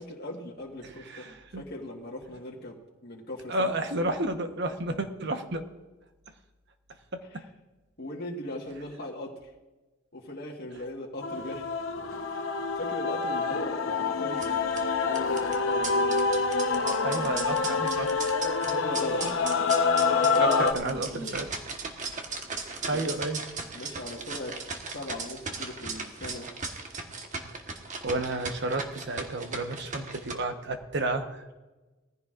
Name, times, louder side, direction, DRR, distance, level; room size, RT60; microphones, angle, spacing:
voice 1, 0.0-1.3 1.6-4.1 7.3-7.4 8.0-9.4 10.1-11.8 12.3-16.9 18.6-20.1 20.3-21.3 22.9-23.2 23.7-24.6 24.9-26.5, left 1 dB, 50° left, -2 dB, 1.5 m, -39 dB
voice 2, 0.8-1.6 3.5-5.7 7.1-7.2 17.0-18.1 20.4-21.5 22.9-23.4 28.0-31.5, right 2 dB, 55° right, 7 dB, 1.1 m, -31 dB
Male singing / Female singing / Musical instrument, 11.2-20.7, left 4 dB, 70° left, 0.9 m, -27 dB
sound 1, 14.3-30.3, right 4 dB, 35° right, 1.3 m, -38 dB
19.0 x 15.0 x 2.5 m, 1.1 s
head